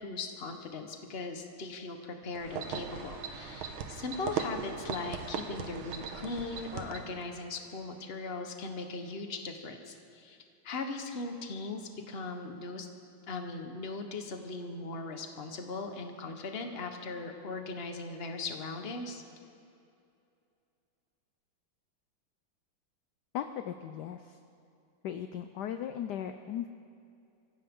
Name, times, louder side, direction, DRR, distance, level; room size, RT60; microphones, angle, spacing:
voice 1, 0.0-10.4 10.6-12.9 13.3-19.2, left 3 dB, 35° left, 5 dB, 1.2 m, -39 dB
sound 1, 2.3-7.2, right 6 dB, 85° right, 1.9 m, -38 dB
voice 2, 23.3-24.4 25.0-26.7, left 9 dB, 70° left, 8 dB, 1.0 m, -37 dB
25.0 x 15.0 x 3.7 m, 2.6 s
omnidirectional pair, 2.2 m